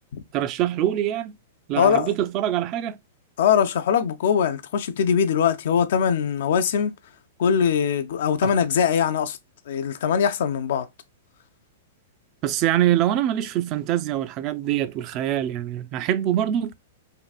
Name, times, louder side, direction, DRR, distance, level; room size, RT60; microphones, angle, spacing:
voice 1, 0.3-1.4 1.7-3.0 8.4-8.5 12.4-16.7, right 12 dB, 40° right, 0.3 m, -24 dB
voice 2, 1.8-2.1 3.4-6.9 7.4-9.4 9.7-10.9, left 7 dB, 65° left, 0.4 m, -21 dB
3.5 x 2.5 x 2.3 m
hypercardioid pair, 110°, 0 cm